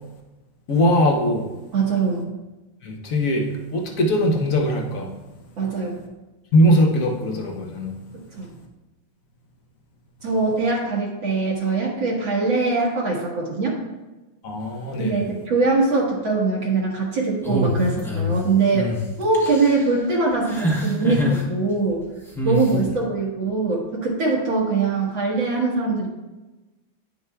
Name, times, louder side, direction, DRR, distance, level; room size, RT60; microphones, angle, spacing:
voice 1, 0.7-1.5 2.8-5.1 6.5-8.0 14.4-15.3, equal, 55° left, 2 dB, 1.0 m, -20 dB
voice 2, 1.7-2.3 5.6-6.0 8.1-8.5 10.2-13.8 14.9-18.9 19.2-22.0 22.4-26.1, right 3 dB, 70° right, -4 dB, 2.1 m, -22 dB
sound 1, 17.4-18.3 18.7-19.0 19.3-19.8 20.5-21.4 22.3-22.7, equal, 5° left, 0.5 m, -24 dB
9.6 x 6.6 x 2.3 m, 1.1 s
omnidirectional pair, 2.2 m